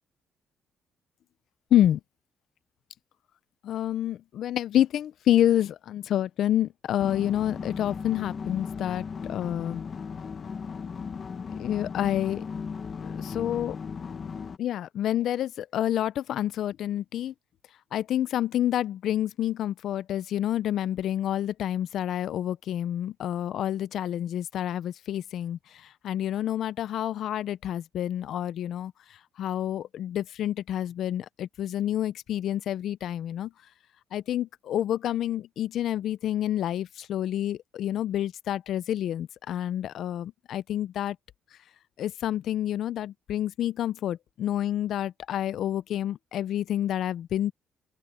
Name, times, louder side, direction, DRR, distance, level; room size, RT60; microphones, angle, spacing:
voice 1, 3.6-9.0 9.3-9.8 11.6-12.4 13.0-13.8 14.6-17.3 17.9-25.6 26.0-28.9 29.4-33.5 34.1-41.2 42.0-47.5, left 11 dB, 60° left, 0.4 m, -28 dB
sound 1, 7.0-14.6, left 5 dB, 30° left, 1.1 m, -36 dB
open air
cardioid pair, 180°, 0 cm